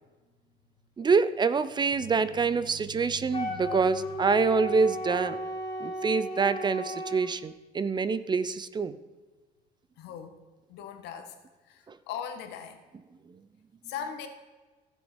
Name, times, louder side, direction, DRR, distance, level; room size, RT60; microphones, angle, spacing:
voice 1, 1.0-5.4 5.8-8.9, right 5 dB, 25° right, 14 dB, 0.5 m, -26 dB
sound 1, 1.9-6.1, right 4 dB, 75° right, 3.7 m, -48 dB
Wind instrument woodwind instrument, 3.3-7.3, equal, 25° left, 2.7 m, -35 dB
voice 2, 10.0-10.4 10.7-11.3 11.6-12.8 13.8-14.3, left 8 dB, 85° left, 7 dB, 1.4 m, -39 dB
16.0 x 6.6 x 4.5 m, 1.3 s
cardioid pair, 110°, 17 cm